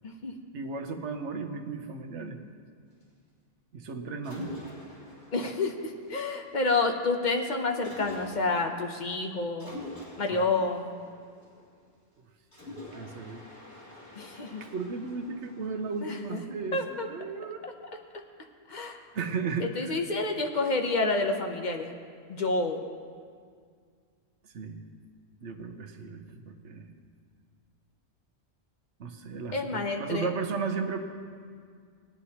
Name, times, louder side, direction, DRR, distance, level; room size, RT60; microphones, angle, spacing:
voice 1, 0.5-2.4 3.7-4.5 10.3-10.4 12.7-13.4 14.6-17.7 19.1-20.0 24.5-24.8 25.4-26.9 29.0-31.0, right 4 dB, 90° right, 7 dB, 1.1 m, -35 dB
Mechanisms, 4.2-6.7 7.8-8.7 9.6-11.9 12.5-16.7, left 1 dB, 85° left, 2.6 m, -46 dB
voice 2, 5.3-9.7 10.2-11.0 14.2-14.6 16.0-17.1 17.6-17.7 18.7-19.0 19.6-21.9 22.3-22.8 29.5-30.3, left 3 dB, 45° left, 4 dB, 0.8 m, -29 dB
18.5 x 9.4 x 2.9 m, 2.1 s
omnidirectional pair, 1.1 m